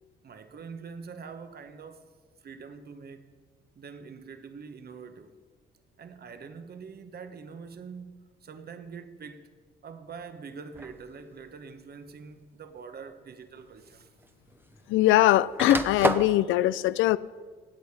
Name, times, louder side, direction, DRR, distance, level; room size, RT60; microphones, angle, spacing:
voice 1, 0.2-2.0 2.4-3.3 3.7-5.3 6.0-9.5 9.8-14.1, right 5 dB, 55° right, 1.2 m, -44 dB
sound 1, 10.7-11.1 12.1-12.2 13.6-13.7 13.9-15.0 15.3-16.4, right 2 dB, 10° right, 0.9 m, -30 dB
voice 2, 14.9-17.2, left 15 dB, 85° left, 0.4 m, -21 dB
17.5 x 8.2 x 4.8 m
cardioid pair, 70°, 20 cm